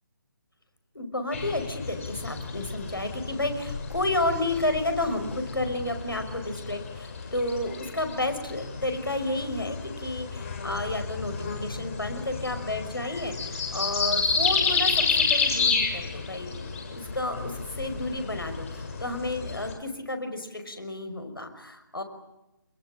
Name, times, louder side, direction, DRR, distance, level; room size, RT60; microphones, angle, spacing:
voice 1, 0.9-22.0, left 1 dB, 80° left, 7 dB, 5.6 m, -31 dB
sound 1, 1.3-19.7, left 4 dB, 40° left, 7.2 m, -31 dB
25.0 x 22.0 x 8.9 m, 0.92 s
figure-of-eight pair, 150°, 12 cm